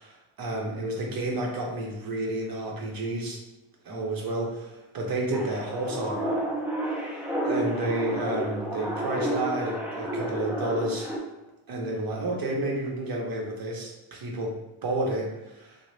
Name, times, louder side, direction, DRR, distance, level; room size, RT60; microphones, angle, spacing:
voice 1, 0.4-3.4 3.8-6.4 6.9-11.1 11.7-15.8, right 1 dB, 45° right, 0 dB, 0.8 m, -31 dB
sound 1, 5.3-11.2, right 1 dB, 5° right, 0.3 m, -31 dB
3.7 x 2.1 x 3.1 m, 1.0 s
cardioid pair, 155°, 49 cm